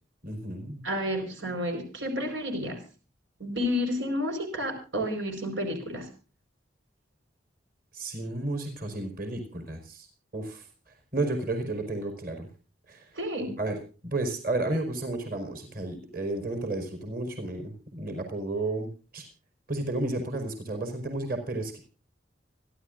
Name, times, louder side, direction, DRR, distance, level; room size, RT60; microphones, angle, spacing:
voice 1, 0.2-0.8 7.9-10.1 10.3-10.7 11.1-12.5 12.9-13.2 13.6-19.3 19.7-21.8, right 2 dB, 50° right, 5 dB, 4.6 m, -32 dB
voice 2, 0.8-2.8 3.4-6.1 13.1-13.5, left 1 dB, 85° right, 4 dB, 4.7 m, -30 dB
28.5 x 11.5 x 2.6 m, 0.34 s
head